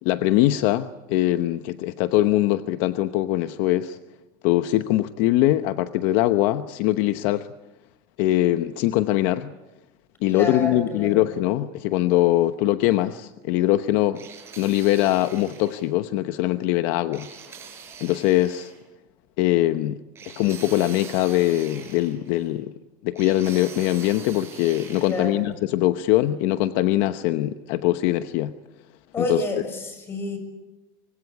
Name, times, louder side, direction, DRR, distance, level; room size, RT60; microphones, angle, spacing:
voice 1, 0.0-4.0 4.4-7.5 8.2-9.5 10.2-14.2 14.6-17.3 18.0-18.7 19.4-20.0 20.4-22.7 23.0-28.5 29.2-29.4, left 15 dB, 65° left, 10 dB, 0.9 m, -22 dB
voice 2, 10.3-11.2 25.1-25.5 29.1-30.4, left 2 dB, 25° left, 8 dB, 6.6 m, -29 dB
sound 1, 14.1-15.9 17.1-18.8 20.1-22.5 23.1-25.3, right 7 dB, 25° right, 6.8 m, -43 dB
25.0 x 25.0 x 8.5 m, 1.0 s
cardioid pair, 155°, 10 cm